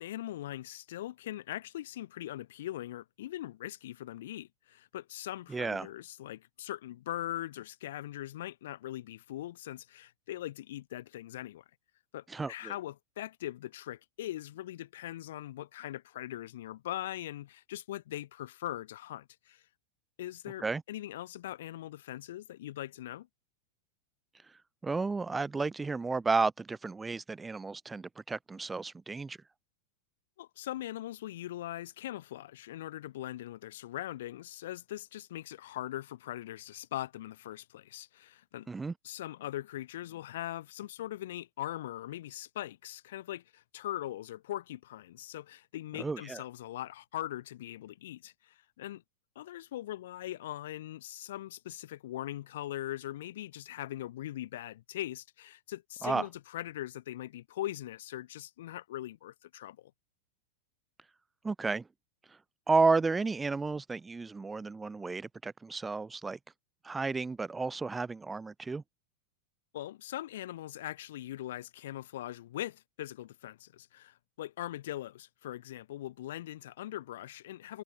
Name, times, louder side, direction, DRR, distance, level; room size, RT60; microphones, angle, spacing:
voice 1, 0.0-11.6 12.1-19.6 20.2-23.3 30.4-38.7 39.0-49.0 49.3-59.9 69.7-77.8, left 13 dB, 55° left, 1.2 m, -41 dB
voice 2, 5.5-5.9 12.3-12.7 20.6-20.8 24.8-29.4 38.7-38.9 46.0-46.4 56.0-56.2 61.4-61.9 62.7-66.4 66.8-68.8, right 4 dB, 10° right, 0.8 m, -32 dB
figure-of-eight pair, 90°, 0 cm